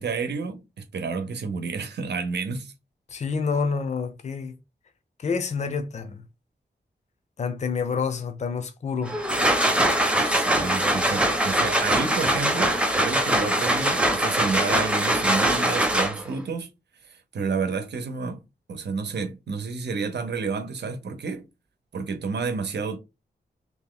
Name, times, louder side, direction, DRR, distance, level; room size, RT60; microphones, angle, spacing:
voice 1, 0.0-2.7 10.3-16.7 17.1-18.4 18.7-21.5 21.9-23.0, right 4 dB, 80° right, 0.8 m, -30 dB
voice 2, 3.1-4.5 5.2-6.2 7.4-9.2, left 5 dB, 40° left, 0.6 m, -28 dB
sound 1, 9.1-16.4, right 1 dB, 5° right, 0.6 m, -22 dB
3.2 x 2.8 x 3.9 m
wide cardioid pair, 145°, 17 cm